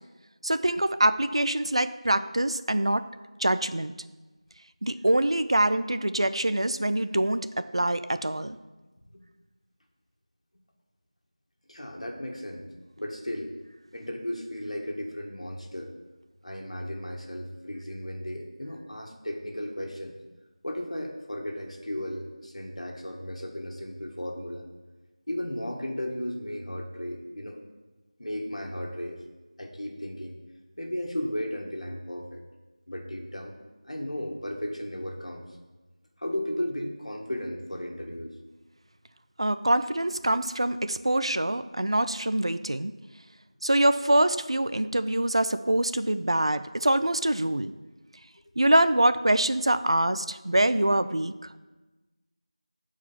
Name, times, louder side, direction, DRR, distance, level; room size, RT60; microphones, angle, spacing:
voice 1, 0.4-3.1 3.4-3.9 4.8-8.6 39.4-42.9 43.6-47.7 48.6-51.3, right 1 dB, 50° right, 12 dB, 0.5 m, -24 dB
voice 2, 11.7-12.7 13.0-13.5 13.9-15.9 16.4-20.2 20.6-24.6 25.3-27.6 28.2-29.2 29.6-30.4 30.8-32.4 32.9-33.5 33.9-35.4 36.2-38.3, left 1 dB, 70° left, 1 dB, 1.7 m, -35 dB
12.5 x 4.9 x 7.2 m, 1.2 s
figure-of-eight pair, 175°, 4 cm